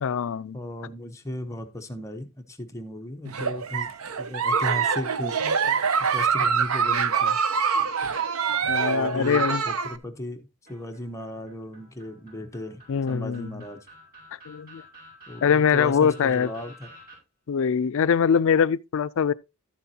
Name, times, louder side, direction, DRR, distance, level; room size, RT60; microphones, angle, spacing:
voice 1, 0.0-0.6 8.7-9.6 12.9-13.5 14.5-14.8 15.4-16.5 17.5-19.3, left 7 dB, 65° left, 0.4 m, -23 dB
voice 2, 0.5-3.9 4.2-5.4 6.1-7.4 8.9-12.8 13.1-13.9 15.3-16.9, left 1 dB, 15° left, 1.0 m, -36 dB
Giggle, 3.3-10.0, right 6 dB, 75° right, 0.7 m, -25 dB
sound 1, 10.7-17.2, equal, 45° right, 5.5 m, -50 dB
12.5 x 7.1 x 2.8 m
head